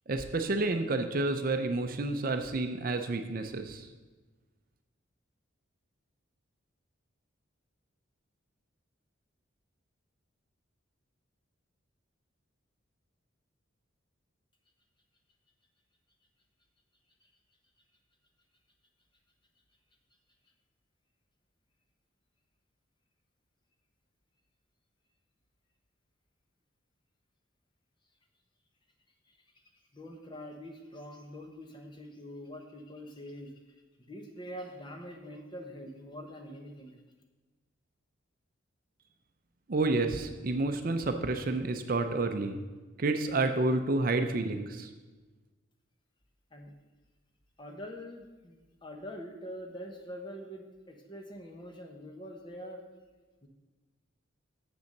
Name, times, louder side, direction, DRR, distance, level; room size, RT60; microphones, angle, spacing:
voice 1, 0.1-3.9 39.7-42.6 43.0-44.9, right 2 dB, 45° right, 7 dB, 0.5 m, -30 dB
voice 2, 29.9-33.5 34.0-37.0 46.5-46.7 47.6-52.9 53.4-53.5, equal, 25° left, 3 dB, 1.0 m, -44 dB
7.1 x 6.8 x 6.5 m, 1.3 s
head